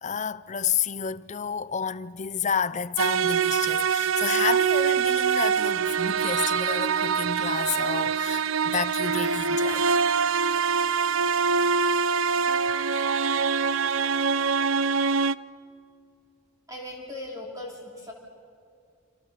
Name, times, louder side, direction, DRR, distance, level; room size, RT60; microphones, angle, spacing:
voice 1, 0.0-9.8, left 7 dB, 35° left, 0.6 m, -30 dB
sound 1, 3.0-15.4, right 6 dB, 80° right, 0.6 m, -24 dB
voice 2, 16.7-18.1, left 1 dB, 15° right, 3.2 m, -38 dB
28.0 x 26.5 x 6.8 m
head